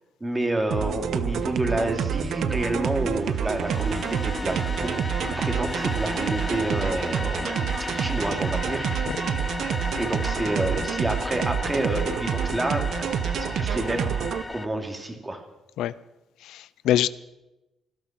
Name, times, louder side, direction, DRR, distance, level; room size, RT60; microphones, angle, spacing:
voice 1, 0.2-8.9 9.4-12.8 13.4-14.1 14.5-15.4, right 1 dB, 15° right, 2.8 m, -29 dB
sound 1, 0.7-14.4, right 7 dB, 70° right, 0.9 m, -28 dB
sound 2, 2.8-14.7, left 3 dB, 20° left, 0.4 m, -35 dB
voice 2, 16.4-17.1, left 12 dB, 85° left, 0.4 m, -24 dB
18.5 x 12.0 x 6.1 m
cardioid pair, 90°, 0 cm